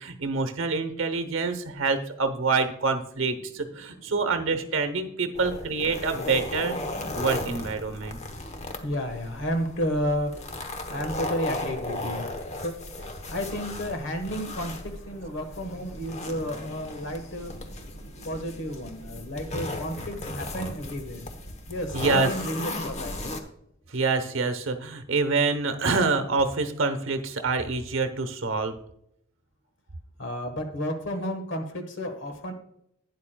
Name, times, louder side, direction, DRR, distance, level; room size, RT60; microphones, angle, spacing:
voice 1, 0.0-6.8 7.1-8.2 21.9-22.3 23.9-28.8, right 4 dB, 70° right, 9 dB, 0.9 m, -26 dB
rits biljartkeu zak, 5.4-23.4, left 2 dB, 35° left, 1.0 m, -36 dB
voice 2, 8.8-12.7 13.3-23.3 30.2-32.5, equal, 60° left, 7 dB, 1.3 m, -32 dB
12.0 x 9.6 x 2.3 m, 0.73 s
head